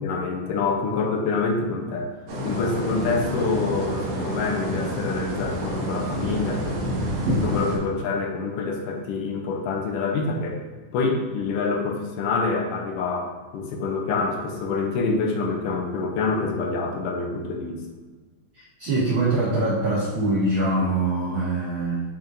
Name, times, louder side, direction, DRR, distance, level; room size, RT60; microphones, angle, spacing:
voice 1, 0.0-2.1 2.4-6.8 7.3-10.6 10.9-17.8, left 4 dB, 80° left, 2 dB, 2.3 m, -26 dB
sound 1, 2.3-7.8, equal, 65° right, 2.2 m, -28 dB
voice 2, 18.5-22.0, right 2 dB, 80° right, -6 dB, 1.1 m, -23 dB
8.8 x 4.2 x 2.6 m, 1.4 s
omnidirectional pair, 3.7 m